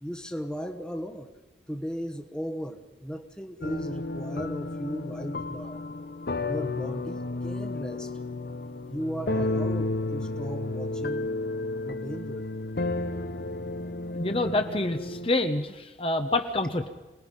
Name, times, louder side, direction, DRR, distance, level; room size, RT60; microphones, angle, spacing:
voice 1, 0.0-1.3 1.7-5.8 6.5-8.1 8.9-11.3 11.8-12.5, equal, 5° left, 5 dB, 1.2 m, -36 dB
sound 1, 3.6-15.3, left 2 dB, 60° left, 0.9 m, -32 dB
voice 2, 14.1-16.9, left 2 dB, 30° left, 6 dB, 1.1 m, -27 dB
26.0 x 19.0 x 5.5 m, 1.1 s
head